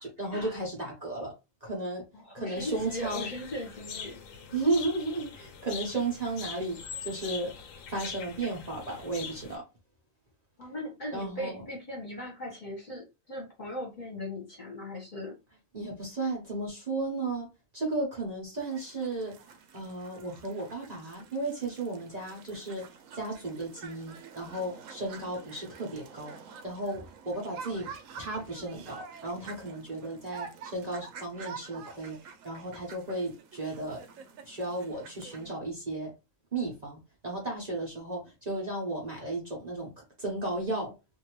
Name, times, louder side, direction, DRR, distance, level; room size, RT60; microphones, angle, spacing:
voice 1, 0.0-1.3 1.6-2.0 2.3-3.3 4.5-6.8 7.0-7.5 7.9-9.6 11.1-11.6 15.7-17.5 17.7-19.4 19.7-22.9 23.1-26.4 26.6-27.9 28.2-32.2 32.4-34.0 34.5-36.1 36.5-37.0 37.2-39.9 40.2-40.9, right 2 dB, 35° right, 1.0 m, -34 dB
voice 2, 2.1-4.2 10.6-15.4, left 1 dB, 40° left, 1.2 m, -39 dB
sound 1, 2.6-9.6, left 6 dB, 85° left, 1.0 m, -43 dB
sound 2, 18.6-35.5, right 6 dB, 90° right, 1.0 m, -48 dB
2.7 x 2.6 x 3.0 m
omnidirectional pair, 1.3 m